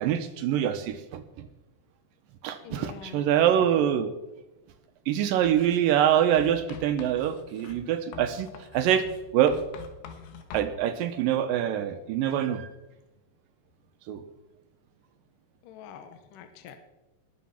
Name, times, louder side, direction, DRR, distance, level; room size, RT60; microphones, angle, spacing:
voice 1, 0.0-1.5 2.4-4.1 5.1-9.1 9.3-9.6 10.5-12.7 14.1-14.2, right 10 dB, 80° right, 9 dB, 2.2 m, -25 dB
voice 2, 2.6-3.2 15.6-16.8, left 8 dB, 70° left, 7 dB, 2.3 m, -45 dB
Writing, 5.4-5.8 6.3-10.7, left 6 dB, 90° left, 3.5 m, -45 dB
20.0 x 7.1 x 5.8 m, 1.0 s
omnidirectional pair, 4.6 m